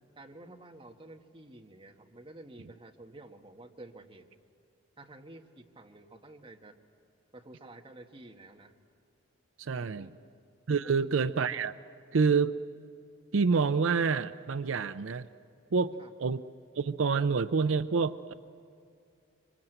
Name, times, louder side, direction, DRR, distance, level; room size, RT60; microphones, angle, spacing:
voice 1, 0.1-4.2 5.0-6.7 7.3-8.7 9.9-10.1 10.8-11.1 16.0-16.1, right 2 dB, 25° right, 2 dB, 1.5 m, -50 dB
voice 2, 9.6-10.1 10.7-11.8 12.1-12.6 13.3-15.3 15.7-16.4 16.8-18.4, right 5 dB, 80° right, 12 dB, 0.5 m, -27 dB
25.5 x 25.0 x 8.0 m, 2.4 s
head